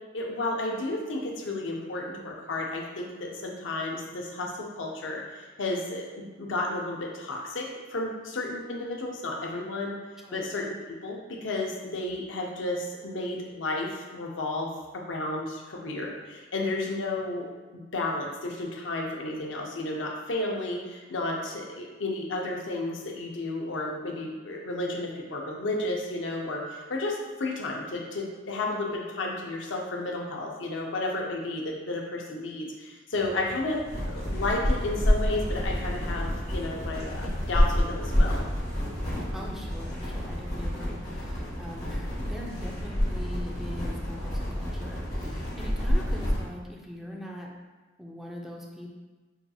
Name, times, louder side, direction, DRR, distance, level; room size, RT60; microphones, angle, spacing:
voice 1, 0.1-10.0 10.3-10.8 11.0-17.5 17.7-33.8 34.1-38.5, left 2 dB, 80° left, 0 dB, 0.6 m, -32 dB
sound 1, 33.1-39.2, right 1 dB, 45° right, 0.6 m, -48 dB
sound 2, 33.9-46.4, equal, 35° left, 1.1 m, -28 dB
voice 2, 39.3-47.5 48.0-48.9, equal, ahead, -1 dB, 0.4 m, -42 dB
5.6 x 2.8 x 2.3 m, 1.3 s
head